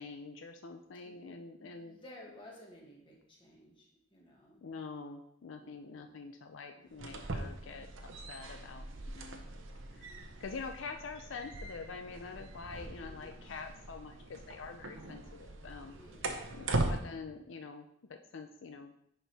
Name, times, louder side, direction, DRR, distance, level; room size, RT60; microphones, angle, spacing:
voice 1, 0.0-2.0 4.6-9.4 9.9-10.1 10.4-16.0 16.5-18.9, left 4 dB, 75° left, 6 dB, 0.5 m, -46 dB
voice 2, 1.0-4.6 5.5-6.3 6.7-7.2 9.8-10.6 12.7-13.6 15.8-17.3, left 1 dB, 25° left, -2 dB, 1.7 m, -57 dB
sound 1, 6.9-17.0, right 2 dB, 85° right, 0.8 m, -40 dB
10.0 x 4.4 x 3.4 m, 0.74 s
head